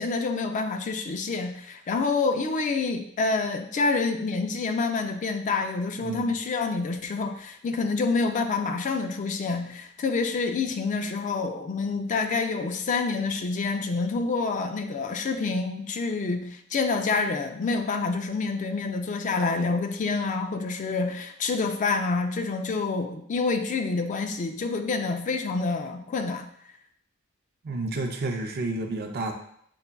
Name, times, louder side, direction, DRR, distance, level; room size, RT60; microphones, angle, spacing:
voice 1, 0.0-26.5, left 4 dB, 35° left, 6 dB, 0.3 m, -27 dB
voice 2, 6.0-6.3 27.6-29.3, right 2 dB, 50° right, 4 dB, 0.5 m, -30 dB
6.7 x 2.3 x 2.2 m, 0.69 s
head